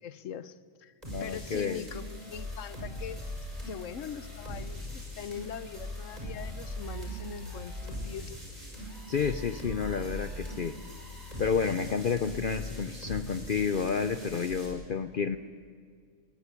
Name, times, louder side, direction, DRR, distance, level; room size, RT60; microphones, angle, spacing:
voice 1, 0.0-0.9 1.2-3.2 3.7-8.4, left 8 dB, 70° left, 16 dB, 1.1 m, -42 dB
sound 1, 1.0-14.7, equal, 30° right, 6.0 m, -40 dB
voice 2, 1.1-1.9 9.1-10.8 11.4-15.4, left 6 dB, 50° left, 11 dB, 0.7 m, -30 dB
20.5 x 20.5 x 8.3 m, 2.1 s
omnidirectional pair, 1.4 m